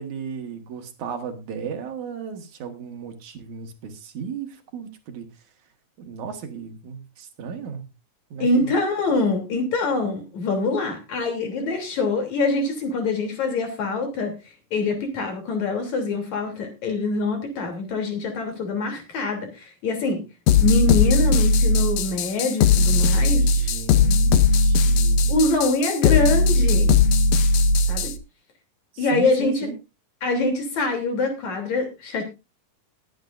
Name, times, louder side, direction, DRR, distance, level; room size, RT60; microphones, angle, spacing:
voice 1, 0.0-5.3 6.0-7.9 8.3-8.7 23.4-25.3 28.9-29.8, right 6 dB, 65° right, 6 dB, 2.9 m, -35 dB
voice 2, 8.4-14.3 14.7-20.2 20.6-23.7 25.3-26.9 27.9-28.1 29.0-29.7 30.2-32.2, left 3 dB, 55° left, 4 dB, 4.4 m, -24 dB
sound 1, 20.5-28.2, left 3 dB, 75° left, 1.5 m, -18 dB
20.5 x 9.2 x 2.6 m, 0.26 s
omnidirectional pair, 3.8 m